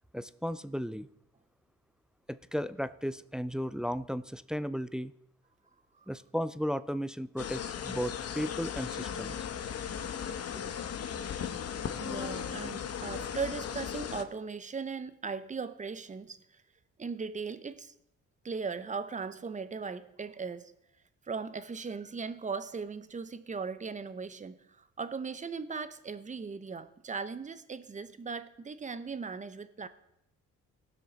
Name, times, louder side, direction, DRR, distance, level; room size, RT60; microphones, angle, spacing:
voice 1, 0.1-1.1 2.3-5.1 6.1-9.5, equal, 5° right, 0.3 m, -35 dB
sound 1, 7.4-14.2, left 8 dB, 55° left, 0.8 m, -37 dB
voice 2, 12.0-16.6 17.0-17.9 18.4-20.7 21.2-29.9, right 5 dB, 25° right, 0.7 m, -38 dB
18.0 x 6.3 x 4.0 m
cardioid pair, 90°, 30 cm